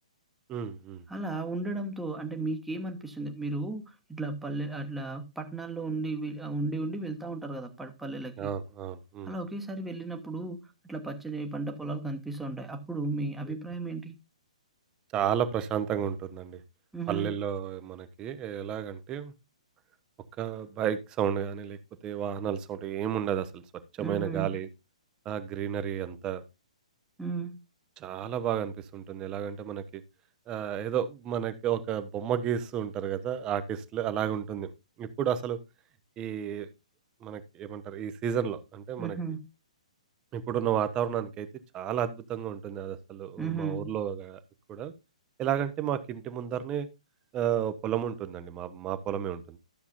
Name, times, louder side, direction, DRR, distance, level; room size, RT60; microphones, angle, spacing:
voice 1, 0.5-1.0 8.4-9.3 13.5-13.6 15.1-16.6 17.1-19.3 20.4-21.8 22.0-23.6 24.0-24.7 25.2-26.4 28.0-30.0 30.5-34.7 35.0-35.6 36.2-36.7 37.2-39.2 40.3-41.5 41.7-44.4 44.7-44.9 45.4-46.9 47.3-49.6, right 9 dB, 20° right, 0.8 m, -32 dB
voice 2, 1.1-8.5 9.2-14.1 16.9-17.3 24.0-24.5 27.2-27.6 39.0-39.4 43.4-43.9, right 3 dB, 5° right, 1.2 m, -34 dB
12.5 x 7.0 x 2.6 m
figure-of-eight pair, 120°, 4 cm